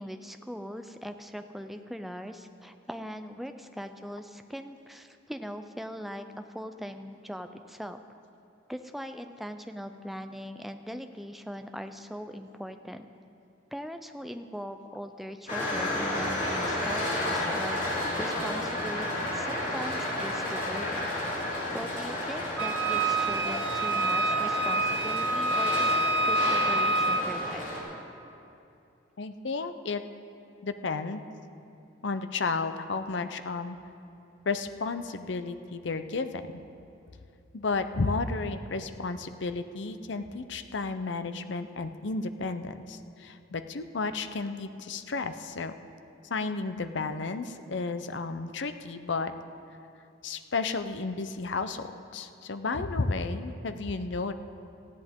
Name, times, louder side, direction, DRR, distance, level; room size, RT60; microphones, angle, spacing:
voice 1, 0.0-8.2 8.7-13.1 13.7-21.1 21.7-25.9 26.2-27.6, equal, ahead, 7 dB, 0.5 m, -40 dB
sound 1, 15.5-27.8, left 1 dB, 40° left, 3.2 m, -32 dB
Wind instrument woodwind instrument, 22.6-27.3, right 2 dB, 65° right, 0.7 m, -27 dB
voice 2, 29.2-30.0 30.6-31.2 32.0-33.8 34.5-36.6 37.5-45.7 46.2-49.3 50.2-54.3, left 3 dB, 65° left, 10 dB, 0.6 m, -32 dB
18.5 x 14.5 x 3.7 m, 2.7 s
head